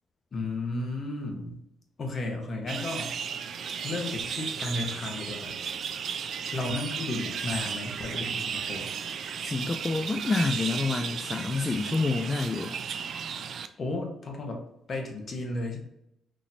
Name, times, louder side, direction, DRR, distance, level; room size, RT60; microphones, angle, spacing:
voice 1, 0.3-1.6 2.0-3.2 3.8-5.6 6.5-8.9 13.8-15.8, left 2 dB, 45° left, 2 dB, 1.0 m, -33 dB
sound 1, 2.7-13.7, right 7 dB, 60° right, 0.3 m, -34 dB
voice 2, 9.4-12.8, left 3 dB, 25° left, 4 dB, 0.3 m, -28 dB
4.2 x 3.0 x 2.6 m, 0.83 s
cardioid pair, 90°, 0 cm